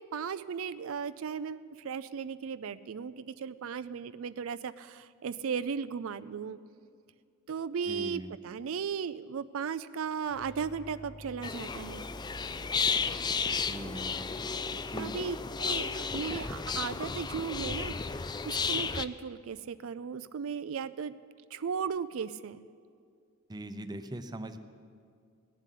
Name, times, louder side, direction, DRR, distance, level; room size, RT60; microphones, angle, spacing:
voice 1, 0.0-6.6 7.5-12.1 15.0-21.1 21.5-22.6, right 6 dB, 70° right, 14 dB, 0.4 m, -36 dB
voice 2, 7.9-8.3 13.7-14.4 14.9-15.2 23.5-24.6, right 1 dB, 20° right, 8 dB, 0.7 m, -41 dB
sound 1, 10.2-16.5, equal, 50° left, 1.1 m, -48 dB
sound 2, 11.4-19.1, left 5 dB, 20° left, 0.4 m, -33 dB
18.5 x 7.5 x 10.0 m, 2.2 s
head